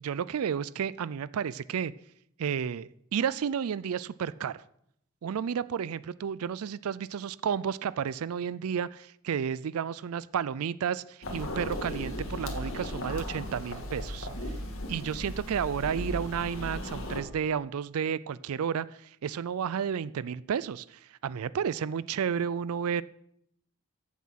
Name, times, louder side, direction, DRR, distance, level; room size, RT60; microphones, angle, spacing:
voice 1, 0.0-1.9 2.4-4.6 5.2-14.3 14.9-23.0, right 7 dB, 80° right, 18 dB, 0.4 m, -32 dB
sound 1, 11.2-17.2, left 1 dB, 65° left, 2.1 m, -36 dB
15.0 x 7.3 x 5.8 m, 0.72 s
head